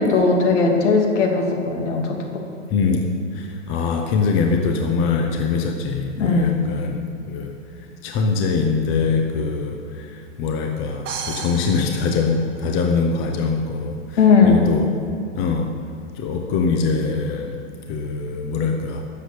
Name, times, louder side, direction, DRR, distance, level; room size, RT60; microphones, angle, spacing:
voice 1, 0.0-2.4 6.2-6.6 14.2-14.6, left 4 dB, 75° left, 1 dB, 2.8 m, -18 dB
voice 2, 2.7-14.9 15.3-15.7 16.1-17.6 17.9-19.0, left 4 dB, 35° left, 3 dB, 1.1 m, -23 dB
sound 1, 11.1-13.0, right 5 dB, 30° right, 1.8 m, -34 dB
12.5 x 7.6 x 8.5 m, 2.4 s
hypercardioid pair, 135°, 36 cm